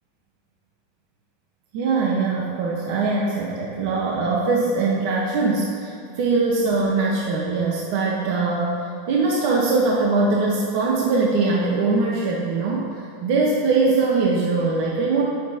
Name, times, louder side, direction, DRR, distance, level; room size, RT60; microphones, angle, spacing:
voice 1, 1.7-12.9 13.2-15.2, right 3 dB, 60° right, -3 dB, 1.3 m, -22 dB
17.5 x 7.2 x 3.0 m, 2.7 s
supercardioid pair, 155°, 0 cm